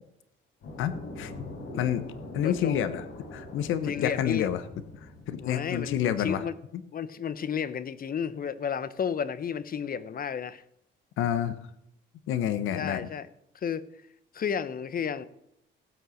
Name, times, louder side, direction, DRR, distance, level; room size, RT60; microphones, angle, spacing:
sound 1, 0.6-6.0, left 2 dB, 70° left, 4.7 m, -43 dB
voice 1, 0.8-1.3 1.7-2.0 2.3-3.0 3.3-4.6 5.0-6.4 6.7-6.8 11.2-11.6 12.3-13.1, left 10 dB, 85° left, 13 dB, 1.1 m, -28 dB
voice 2, 2.4-2.9 3.9-4.5 5.4-6.5 6.9-10.6 12.7-13.3 13.6-13.8 14.3-15.3, left 7 dB, 45° left, 17 dB, 0.9 m, -32 dB
16.0 x 8.0 x 6.4 m, 0.79 s
cardioid pair, 90°, 20 cm